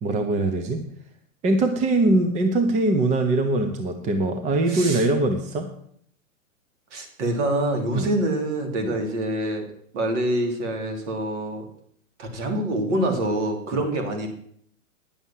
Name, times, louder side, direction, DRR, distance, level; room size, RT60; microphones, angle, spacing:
voice 1, 0.0-0.8 1.4-5.7 7.9-8.1 13.7-13.8, right 2 dB, 15° right, 6 dB, 0.8 m, -22 dB
voice 2, 4.7-5.1 6.9-9.7 9.9-11.6 12.2-14.3, right 1 dB, 55° right, 4 dB, 3.2 m, -26 dB
9.9 x 7.1 x 7.3 m, 0.65 s
hypercardioid pair, 140°, 41 cm